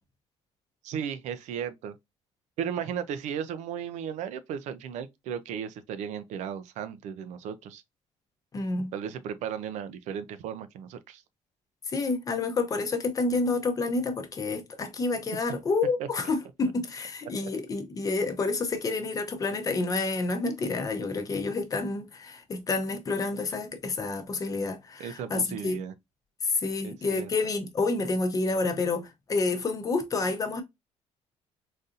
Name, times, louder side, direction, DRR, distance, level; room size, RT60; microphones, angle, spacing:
voice 1, 0.8-1.9 2.6-7.8 8.9-11.2 16.0-16.1 25.0-25.9 26.8-27.3, right 8 dB, 80° right, 0.5 m, -35 dB
voice 2, 8.5-8.9 11.9-25.8 26.4-30.6, left 3 dB, 30° left, 0.7 m, -29 dB
3.9 x 2.6 x 2.4 m
cardioid pair, 145°, 12 cm